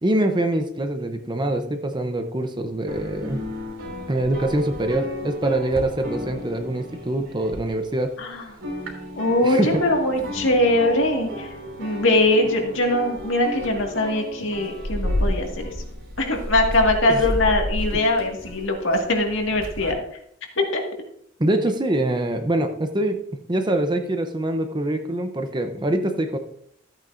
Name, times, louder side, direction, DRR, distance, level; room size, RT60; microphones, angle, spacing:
voice 1, 0.0-3.4 4.1-8.1 9.4-9.7 17.1-17.2 21.4-26.4, right 1 dB, 20° right, 7 dB, 0.7 m, -24 dB
sound 1, 2.9-8.2 8.5-19.9, left 1 dB, 65° right, 3.2 m, -32 dB
voice 2, 8.2-8.5 9.1-15.8 16.2-20.0 20.6-20.8, left 1 dB, 65° left, 2 dB, 1.9 m, -22 dB
13.5 x 8.9 x 2.6 m, 0.69 s
head